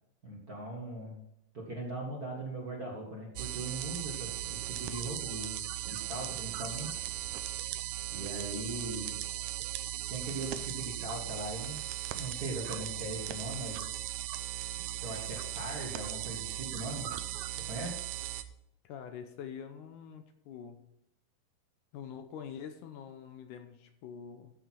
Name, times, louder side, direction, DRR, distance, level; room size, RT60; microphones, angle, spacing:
voice 1, 0.2-1.2 1.5-6.9 8.1-9.2 10.1-11.8 12.1-13.9 15.0-17.1 17.7-18.0, right 1 dB, 35° right, -2 dB, 1.6 m, -40 dB
sound 1, 3.4-18.4, right 13 dB, 75° right, 1.9 m, -38 dB
voice 2, 18.8-20.8 21.9-24.5, left 7 dB, 75° left, 7 dB, 2.2 m, -45 dB
15.0 x 6.5 x 4.6 m, 0.79 s
omnidirectional pair, 4.0 m